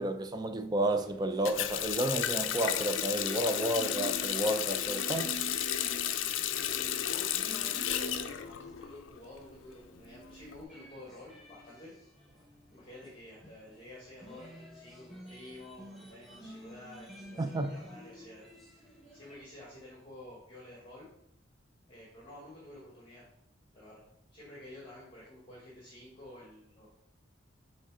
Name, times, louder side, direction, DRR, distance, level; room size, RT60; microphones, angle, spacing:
voice 1, 0.0-5.3 17.4-17.8, right 1 dB, 20° right, 0.4 m, -31 dB
sound 1, 0.8-6.6 6.9-19.4, right 3 dB, ahead, 0.9 m, -51 dB
Water tap faucet, 1.5-9.2 9.5-10.6, left 10 dB, 70° left, 0.4 m, -33 dB
voice 2, 6.5-11.9 12.7-21.1 21.9-23.3 23.7-24.0 24.3-26.9, left 1 dB, 25° left, 1.3 m, -50 dB
6.5 x 3.2 x 4.9 m
head